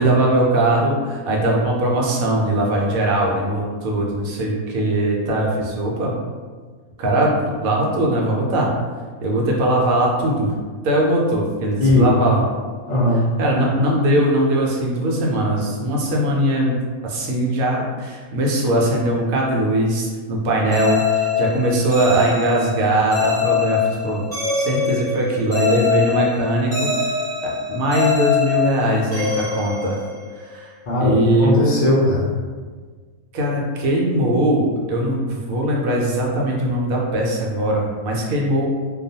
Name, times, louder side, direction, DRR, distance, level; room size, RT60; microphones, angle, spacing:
voice 1, 0.0-6.2 7.0-8.7 9.2-10.5 10.8-12.5 13.4-16.8 17.0-24.2 24.6-26.9 27.7-30.0 30.4-30.7 31.0-31.5 33.3-38.7, right 1 dB, 80° right, -2 dB, 1.0 m, -20 dB
voice 2, 11.8-12.2 12.9-13.2 30.9-32.3 38.3-38.4, left 1 dB, 85° left, -6 dB, 0.3 m, -18 dB
sound 1, 20.7-30.5, left 6 dB, 5° left, 0.4 m, -24 dB
2.3 x 2.3 x 2.7 m, 1.5 s
omnidirectional pair, 1.5 m